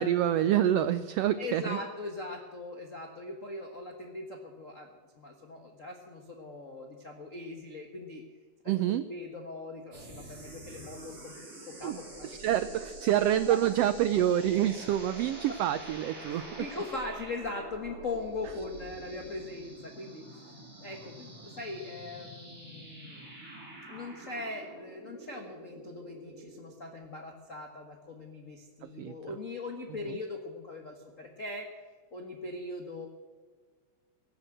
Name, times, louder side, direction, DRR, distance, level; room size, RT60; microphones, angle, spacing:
voice 1, 0.0-1.8 8.7-9.0 11.8-12.0 12.2-16.7 29.0-29.1 30.0-30.2, right 11 dB, 80° right, 12 dB, 1.4 m, -27 dB
voice 2, 1.4-4.9 5.1-8.2 8.6-8.7 9.1-11.4 11.6-12.3 12.7-12.8 13.5-13.6 16.3-20.4 20.8-23.3 23.9-31.7 32.1-33.1, left 2 dB, 40° left, 2 dB, 1.2 m, -40 dB
sound 1, 9.9-26.7, right 2 dB, 45° right, 5.4 m, -47 dB
17.5 x 9.1 x 7.8 m, 1.5 s
omnidirectional pair, 3.4 m